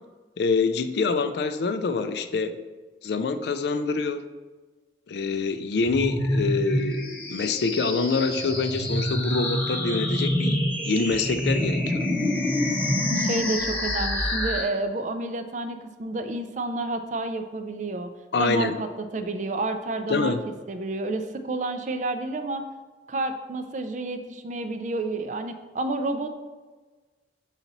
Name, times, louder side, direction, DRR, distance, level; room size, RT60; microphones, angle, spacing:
voice 1, 0.4-2.6 3.0-4.3 5.1-7.0 7.3-12.0 18.3-18.8 20.1-20.4, left 4 dB, 65° left, 10 dB, 0.4 m, -26 dB
sound 1, 5.8-14.6, left 1 dB, 10° left, 0.9 m, -26 dB
voice 2, 13.2-18.1 18.4-18.9 19.1-20.4 20.7-22.7 23.1-26.3, right 2 dB, 40° right, 8 dB, 0.4 m, -30 dB
5.9 x 4.1 x 4.0 m, 1.3 s
head